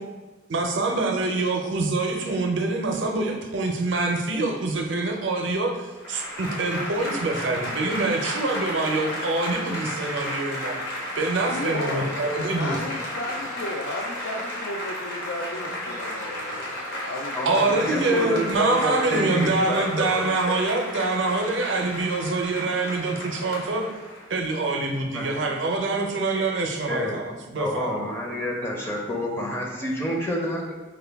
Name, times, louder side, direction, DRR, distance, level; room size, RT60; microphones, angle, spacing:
voice 1, 0.5-10.8 11.2-12.8 17.5-23.9 24.3-28.0, right 2 dB, 70° right, 3 dB, 0.5 m, -25 dB
Applause / Crowd, 6.0-24.5, left 1 dB, 55° left, 0.8 m, -33 dB
voice 2, 11.5-17.6, left 1 dB, 75° left, 0 dB, 0.4 m, -34 dB
voice 3, 17.4-20.6 25.1-25.3 26.9-27.2 27.6-30.8, equal, 10° left, -2 dB, 0.4 m, -28 dB
4.6 x 2.2 x 3.4 m, 1.3 s
head